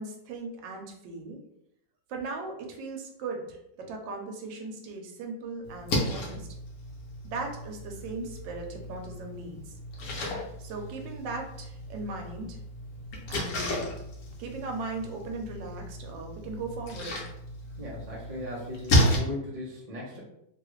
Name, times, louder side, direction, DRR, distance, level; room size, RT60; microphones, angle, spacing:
voice 1, 0.0-1.4 2.1-6.5 7.2-9.7 10.6-12.6 13.3-14.0 14.4-17.2, right 3 dB, 80° right, 2 dB, 1.3 m, -38 dB
Splash splatter, 5.6-19.2, equal, 60° left, 1.1 m, -33 dB
voice 2, 17.8-20.2, left 1 dB, 50° right, -5 dB, 0.4 m, -37 dB
3.2 x 2.4 x 3.0 m, 0.79 s
omnidirectional pair, 2.0 m